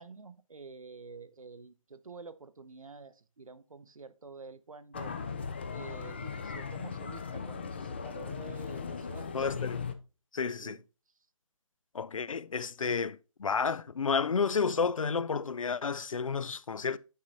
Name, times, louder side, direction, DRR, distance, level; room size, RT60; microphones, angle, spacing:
voice 1, 0.0-5.1 5.7-9.7 10.6-10.8, right 4 dB, 75° right, 0.9 m, -48 dB
sound 1, 4.9-9.9, left 5 dB, 20° left, 0.4 m, -38 dB
voice 2, 9.3-9.8 10.3-10.8 11.9-17.0, left 5 dB, 70° left, 0.5 m, -31 dB
9.3 x 3.8 x 4.0 m
figure-of-eight pair, 155°, 18 cm